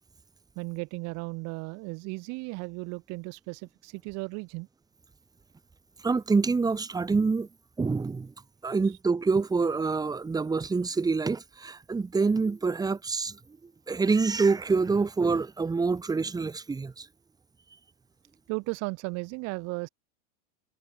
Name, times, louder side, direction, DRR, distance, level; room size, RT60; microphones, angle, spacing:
voice 1, 0.6-4.7 18.5-19.9, right 28 dB, 50° right, 2.9 m, -35 dB
voice 2, 6.0-7.5 7.8-8.3 8.6-17.1, right 4 dB, 10° right, 3.6 m, -26 dB
supercardioid pair, 145°, 34 cm